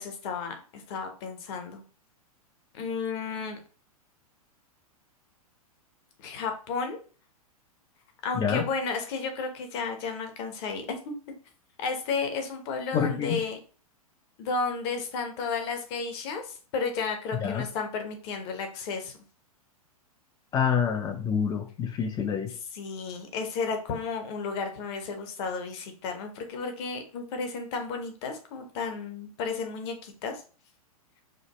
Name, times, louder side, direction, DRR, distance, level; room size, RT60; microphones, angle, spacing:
voice 1, 0.0-1.8 2.7-3.6 6.2-7.0 8.2-11.1 11.8-13.6 14.4-19.1 22.7-30.4, left 4 dB, 45° left, 5 dB, 1.0 m, -33 dB
voice 2, 8.3-8.7 12.9-13.4 17.3-17.7 20.5-22.5, left 7 dB, 20° left, 6 dB, 0.5 m, -27 dB
5.0 x 2.1 x 3.0 m, 0.39 s
figure-of-eight pair, 105°, 19 cm